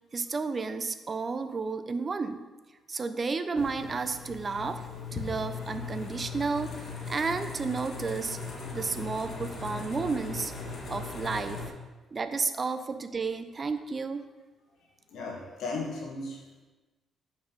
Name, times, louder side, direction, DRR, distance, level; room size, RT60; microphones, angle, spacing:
voice 1, 0.1-2.4 2.9-4.9 5.1-8.4 8.7-10.5 10.9-11.6 12.1-14.2, right 4 dB, 35° right, 10 dB, 0.6 m, -32 dB
sound 1, 3.5-11.7, left 4 dB, 55° left, 1.8 m, -39 dB
voice 2, 14.8-16.5, left 3 dB, 80° left, 0 dB, 2.0 m, -37 dB
8.5 x 5.4 x 5.3 m, 1.2 s
cardioid pair, 90°, 0 cm